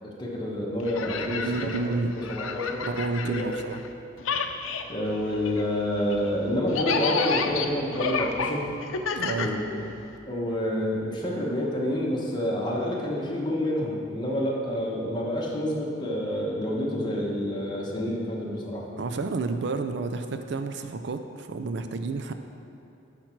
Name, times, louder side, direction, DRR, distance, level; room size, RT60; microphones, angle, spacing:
voice 1, 0.0-1.8 2.1-2.9 3.2-3.5 4.9-8.6 9.3-9.6 10.3-18.8, equal, 20° left, -3 dB, 1.2 m, -28 dB
sound 1, 0.8-3.9 4.2-10.2, left 5 dB, 85° left, 0.6 m, -31 dB
voice 2, 1.3-2.2 2.8-3.8 9.1-9.5 19.0-22.3, right 3 dB, 60° right, 8 dB, 0.4 m, -30 dB
10.5 x 5.9 x 4.5 m, 3.0 s
head